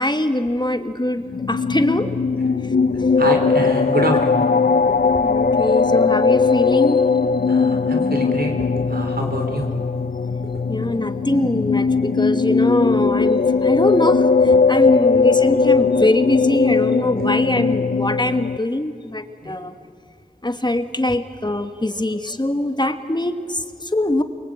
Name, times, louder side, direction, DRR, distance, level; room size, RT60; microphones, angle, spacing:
voice 1, 0.0-2.1 5.2-7.0 10.7-19.7 20.4-24.2, left 1 dB, 30° left, 8 dB, 1.4 m, -22 dB
sound 1, 1.2-18.6, left 4 dB, 65° left, 0.6 m, -19 dB
voice 2, 3.2-4.5 7.5-8.5 8.9-9.7 15.1-15.2 16.6-16.9 17.2-17.3 19.4-19.5 21.1-21.2 21.9-22.0, right 1 dB, 85° right, 3 dB, 3.7 m, -26 dB
28.5 x 23.0 x 8.8 m, 2.3 s
wide cardioid pair, 55°, 16 cm